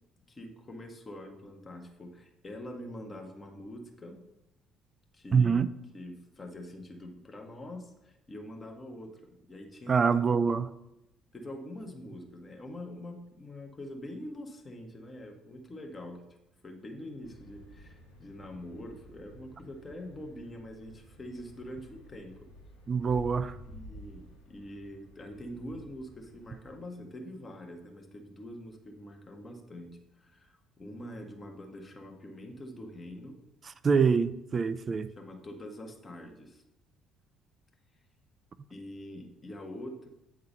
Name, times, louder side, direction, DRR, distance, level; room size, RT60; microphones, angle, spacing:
voice 1, 0.3-4.2 5.1-5.6 5.9-10.5 11.3-16.3 16.6-22.3 23.7-33.4 35.2-36.6 38.7-40.1, left 1 dB, 25° left, 1.4 m, -44 dB
voice 2, 5.3-5.7 9.9-10.7 22.9-23.6 33.8-35.1, right 5 dB, 35° right, 0.3 m, -25 dB
sound 1, 17.2-26.8, equal, 75° left, 1.1 m, -51 dB
8.8 x 3.7 x 5.3 m
figure-of-eight pair, 50°, 0 cm